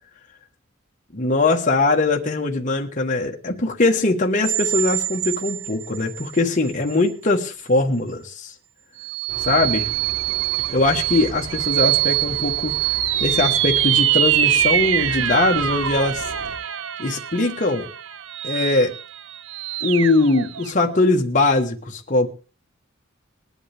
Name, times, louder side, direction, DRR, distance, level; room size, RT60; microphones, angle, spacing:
voice 1, 1.1-8.5 9.4-9.9 10.7-12.8 13.2-16.2 17.0-17.9 18.4-18.9 19.8-22.3, left 2 dB, 40° left, 1 dB, 1.3 m, -21 dB
sound 1, 4.4-6.4 6.9-7.0 9.0-20.7, right 12 dB, 70° right, 0.6 m, -24 dB
sound 2, 9.3-16.5, equal, 30° right, 5.1 m, -38 dB
19.5 x 11.0 x 3.4 m, 0.37 s
head